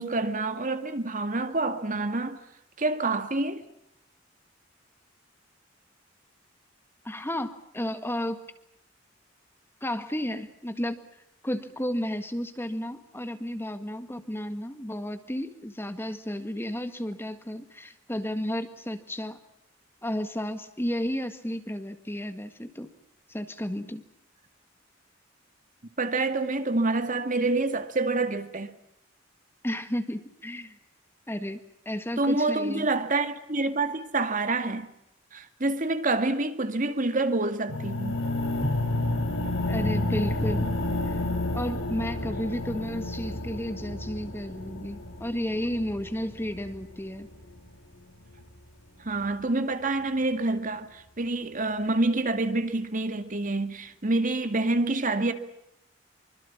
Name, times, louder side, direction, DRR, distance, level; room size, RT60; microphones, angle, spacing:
voice 1, 0.0-2.4 2.8-3.6 26.0-28.7 32.2-34.9 35.3-38.2 49.0-55.3, right 2 dB, 45° right, 2.1 m, -27 dB
voice 2, 7.0-8.5 9.8-11.0 11.4-19.4 20.0-22.9 23.3-24.0 29.6-30.8 31.3-32.9 39.7-40.7 41.1-41.2 41.5-47.3, equal, 10° left, 1.7 m, -32 dB
sound 1, 37.7-47.7, left 1 dB, 85° left, 4.5 m, -30 dB
25.5 x 24.5 x 7.3 m
head